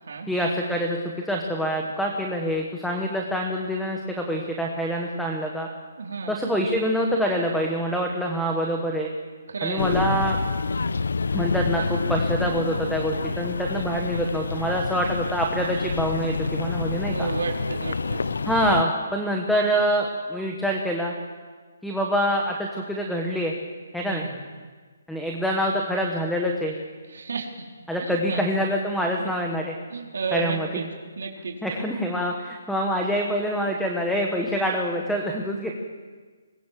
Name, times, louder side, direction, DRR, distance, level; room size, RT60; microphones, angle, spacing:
voice 1, 0.3-5.7 6.3-9.1 9.6-10.4 11.3-17.3 18.4-21.1 21.8-23.5 23.9-24.3 25.1-26.8 27.9-29.7 30.3-30.7 31.6-35.7, equal, ahead, 0 dB, 1.2 m, -26 dB
voice 2, 6.0-6.3 9.5-9.9 17.1-18.3 24.0-24.4 27.1-27.7 28.0-28.4 29.2-29.3 29.9-30.9 31.2-31.6, right 4 dB, 65° right, 0 dB, 3.8 m, -32 dB
sound 1, 9.8-18.8, left 4 dB, 85° left, 0.8 m, -27 dB
26.0 x 20.5 x 7.5 m, 1.5 s
hypercardioid pair, 175°, 0 cm